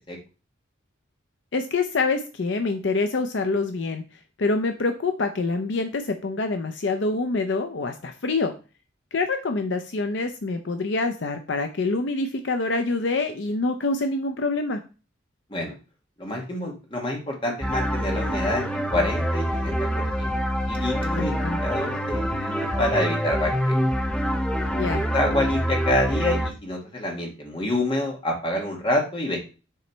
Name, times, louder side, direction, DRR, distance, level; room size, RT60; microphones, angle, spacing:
voice 1, 1.5-4.0 4.4-8.5 9.1-14.8 21.2-21.6 24.7-25.1, left 3 dB, 65° left, 6 dB, 0.6 m, -26 dB
voice 2, 16.2-20.3 20.7-21.3 21.6-23.8 24.9-29.4, left 1 dB, 25° left, 0 dB, 1.4 m, -27 dB
sound 1, 17.6-26.5, equal, 5° left, 0.5 m, -26 dB
6.8 x 3.1 x 4.4 m, 0.33 s
head